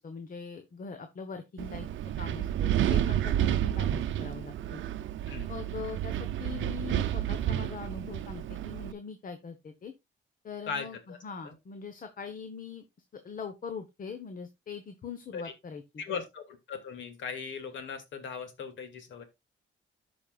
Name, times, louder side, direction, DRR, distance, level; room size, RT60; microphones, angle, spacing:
voice 1, 0.0-1.9 2.2-4.8 5.5-9.9 10.4-12.8 13.1-16.2, left 5 dB, 45° left, 1.2 m, -42 dB
Wind, 1.6-8.9, right 11 dB, 75° right, 0.7 m, -30 dB
voice 2, 10.7-11.2 11.4-11.5 15.3-15.5 16.0-19.2, left 6 dB, 70° left, 2.3 m, -38 dB
13.5 x 5.4 x 2.4 m
cardioid pair, 90°, 20 cm